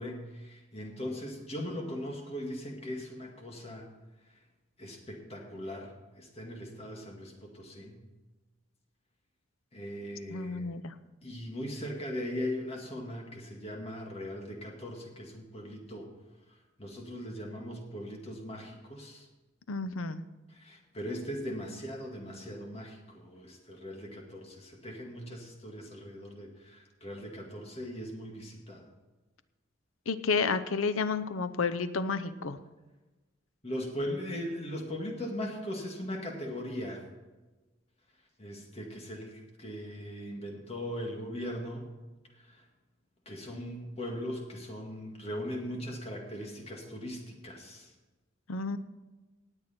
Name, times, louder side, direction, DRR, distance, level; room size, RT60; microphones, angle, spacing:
voice 1, 0.0-3.9 4.8-8.0 9.7-10.7 11.2-16.1 16.8-19.3 20.5-28.8 33.6-37.0 38.4-41.9 42.4-42.6 43.3-47.9, equal, 30° left, 1 dB, 2.0 m, -39 dB
voice 2, 10.3-10.9 19.7-20.2 30.1-32.6 48.5-48.8, left 4 dB, 85° left, 11 dB, 0.7 m, -31 dB
18.5 x 8.0 x 4.4 m, 1.2 s
head